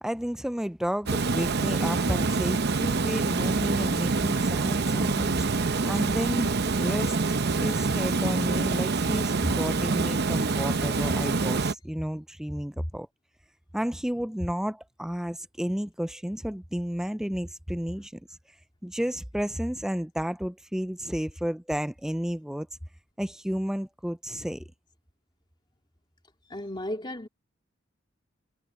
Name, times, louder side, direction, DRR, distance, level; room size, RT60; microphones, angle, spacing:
voice 1, 0.0-13.1 13.7-18.4 18.8-22.7 23.2-24.6, equal, 5° right, 0.4 m, -32 dB
Water, 1.1-11.7, right 3 dB, 55° right, 0.8 m, -26 dB
voice 2, 26.5-27.3, left 1 dB, 25° left, 3.0 m, -34 dB
head